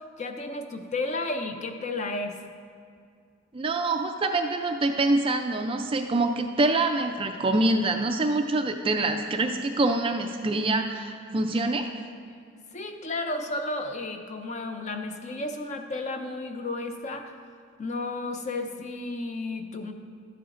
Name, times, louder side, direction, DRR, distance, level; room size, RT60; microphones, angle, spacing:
voice 1, 0.2-2.4 12.7-17.3 17.8-19.9, left 2 dB, 30° left, 5 dB, 0.5 m, -32 dB
voice 2, 3.5-11.9, right 2 dB, 25° right, 5 dB, 0.3 m, -25 dB
12.0 x 7.8 x 2.5 m, 2.3 s
head